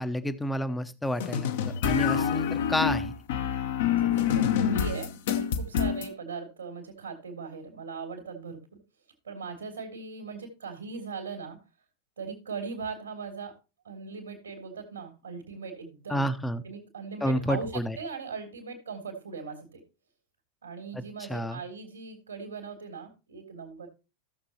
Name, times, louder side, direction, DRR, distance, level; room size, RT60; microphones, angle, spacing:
voice 1, 0.0-1.5 1.8-3.1 16.1-16.6 17.2-18.0 20.9-21.6, equal, 5° left, 12 dB, 0.8 m, -30 dB
sound 1, 1.2-6.1, left 8 dB, 55° left, 0.9 m, -26 dB
voice 2, 2.1-2.5 3.9-8.8 9.2-11.6 12.2-13.6 13.8-16.3 16.6-19.8 20.6-23.9, right 5 dB, 70° right, -1 dB, 2.6 m, -39 dB
15.0 x 7.0 x 2.9 m, 0.30 s
figure-of-eight pair, 90°, 0 cm